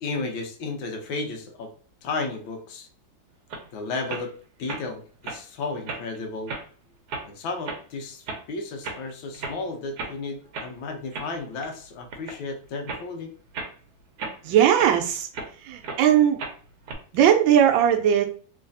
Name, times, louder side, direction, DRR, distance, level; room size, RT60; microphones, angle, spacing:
voice 1, 0.0-1.7 2.0-2.9 3.7-4.3 4.6-6.5 7.2-13.3, left 3 dB, 85° left, 3 dB, 1.5 m, -33 dB
sound 1, 3.5-3.7 4.0-4.3 4.7-4.8 5.2-5.4 5.9-6.2 6.5-6.7 7.1-7.3 7.6-7.8 8.3-8.4 8.8-9.0 9.3-9.6 10.0-10.2 10.5-10.7 11.1-11.8 12.1-12.4 12.9-13.0 13.5-13.7 14.2-15.5 15.8-16.0 16.4-16.9, right 3 dB, 65° right, 1.2 m, -34 dB
voice 2, 14.4-15.3 15.6-16.4 17.1-18.3, right 9 dB, 80° right, 6 dB, 1.3 m, -19 dB
3.3 x 3.1 x 2.5 m, 0.43 s
omnidirectional pair, 2.1 m